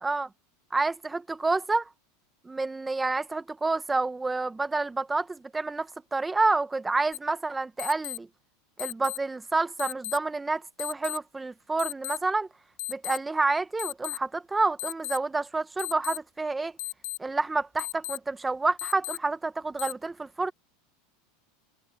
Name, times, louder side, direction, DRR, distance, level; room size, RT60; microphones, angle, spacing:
voice 1, 0.7-1.9 2.4-8.3 8.8-12.5 12.9-16.7 17.2-20.5, right 3 dB, 10° right, 0.9 m, -28 dB
sound 1, 7.1-7.2 7.8-8.2 8.8-9.2 9.8-10.2 10.8-11.2 11.8-12.2 12.8-13.2 13.8-14.2 14.8-15.2 15.8-16.2 16.8-17.2 17.8-18.2 18.8-19.2 19.8-19.9, left 20 dB, 70° left, 1.5 m, -34 dB
supercardioid pair, 140°, 0 cm